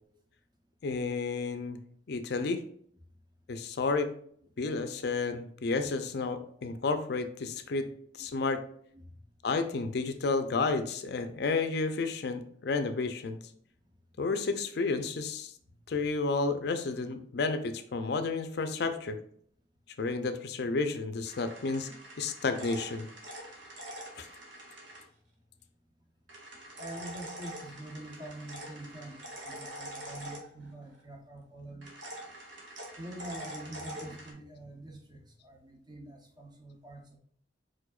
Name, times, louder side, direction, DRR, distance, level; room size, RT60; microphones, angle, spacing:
voice 1, 0.8-1.8 2.1-2.6 3.5-4.1 4.6-7.9 8.1-8.6 9.4-13.4 14.2-15.5 15.9-19.2 20.0-23.1 24.2-24.3, left 3 dB, 60° left, 9 dB, 0.4 m, -31 dB
sound 1, 21.3-25.0 26.3-30.9 31.8-34.3, right 1 dB, 85° right, 1.3 m, -45 dB
voice 2, 26.8-32.0 33.0-37.2, right 1 dB, 25° right, 2 dB, 0.7 m, -45 dB
4.7 x 4.3 x 2.4 m, 0.62 s
head